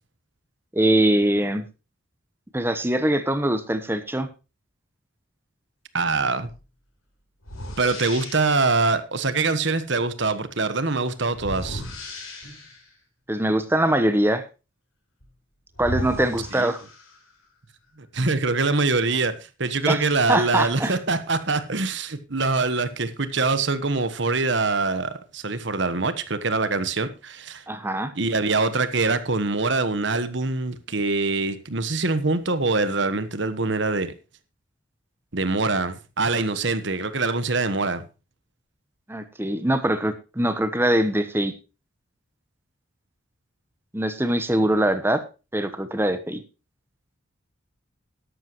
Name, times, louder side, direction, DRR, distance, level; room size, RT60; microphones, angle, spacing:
voice 1, 0.7-1.7 2.5-4.3 13.3-14.4 15.8-16.8 19.9-20.0 20.3-20.9 27.7-28.1 39.1-41.5 43.9-45.2 45.5-46.4, right 1 dB, 10° right, 1.0 m, -22 dB
voice 2, 5.9-6.5 7.8-11.8 16.5-16.7 18.1-19.3 19.6-27.6 28.2-34.1 35.3-38.0, right 3 dB, 60° right, 1.3 m, -24 dB
sound 1, 6.5-6.7 7.4-8.7 11.3-12.9 15.2-15.3 15.7-17.4, left 1 dB, 90° left, 5.0 m, -35 dB
13.0 x 11.5 x 3.1 m
head